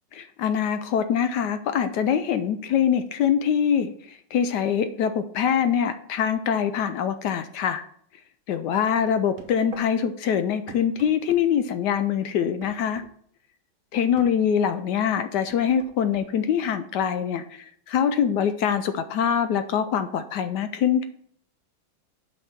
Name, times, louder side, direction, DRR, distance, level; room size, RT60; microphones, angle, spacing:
voice 1, 0.2-7.8 8.5-13.0 13.9-21.0, left 8 dB, 75° left, 10 dB, 1.0 m, -24 dB
sound 1, 9.1-9.9 10.7-11.4 12.6-13.1 14.2-14.4 15.5-16.3, right 4 dB, 55° right, 1.1 m, -43 dB
5.6 x 5.4 x 5.9 m, 0.62 s
omnidirectional pair, 2.2 m